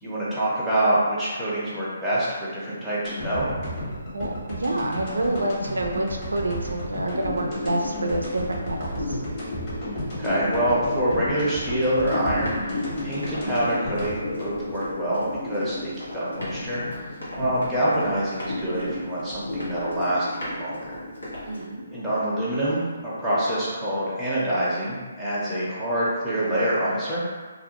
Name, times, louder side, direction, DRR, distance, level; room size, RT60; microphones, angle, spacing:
voice 1, 0.0-3.5 10.2-17.0 17.4-21.0 21.9-27.2, right 1 dB, ahead, -12 dB, 0.7 m, -26 dB
sound 1, 3.0-15.3 15.6-15.7, equal, 35° left, 1.0 m, -34 dB
voice 2, 4.1-9.2 21.4-21.8, right 1 dB, 85° right, 2 dB, 0.4 m, -28 dB
sound 2, 7.2-26.0, left 2 dB, 50° left, 0.5 m, -35 dB
Run, 12.0-21.6, equal, 90° left, 1.0 m, -40 dB
2.5 x 2.0 x 2.9 m, 1.4 s
hypercardioid pair, 150°, 0 cm